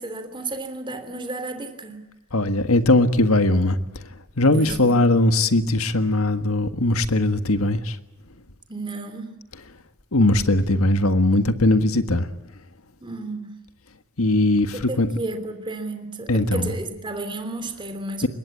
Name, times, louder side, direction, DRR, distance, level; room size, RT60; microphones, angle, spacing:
voice 1, 0.0-2.1 4.5-5.1 8.7-9.4 13.0-13.6 14.7-18.3, right 2 dB, 25° right, 3.2 m, -32 dB
voice 2, 2.3-3.8 4.4-8.0 10.1-12.3 14.2-15.1 16.3-16.7 18.2-18.3, left 2 dB, 75° left, 1.6 m, -19 dB
25.0 x 21.5 x 8.5 m
head